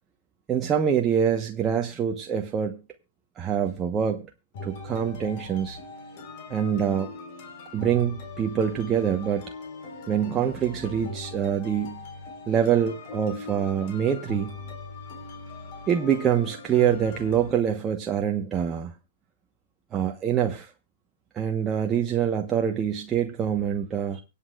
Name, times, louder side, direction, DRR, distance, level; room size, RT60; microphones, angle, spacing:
voice 1, 0.5-2.8 3.4-4.3 4.6-5.8 6.5-7.1 7.7-9.4 10.1-12.0 12.5-14.5 15.9-19.0 19.9-20.7 21.3-24.2, right 8 dB, 20° right, 1.0 m, -25 dB
sound 1, 4.5-17.5, left 3 dB, 45° left, 4.0 m, -40 dB
24.5 x 8.4 x 2.4 m
figure-of-eight pair, 115°, 0 cm